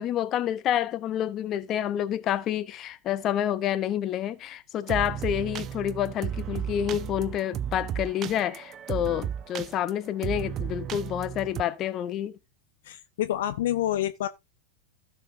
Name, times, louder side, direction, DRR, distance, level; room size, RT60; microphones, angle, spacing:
voice 1, 0.0-12.4, left 10 dB, 30° left, 0.9 m, -28 dB
sound 1, 4.9-11.6, right 9 dB, 30° right, 0.6 m, -34 dB
voice 2, 12.8-14.3, left 12 dB, 55° left, 0.7 m, -28 dB
15.5 x 5.7 x 2.7 m
figure-of-eight pair, 90°, 0 cm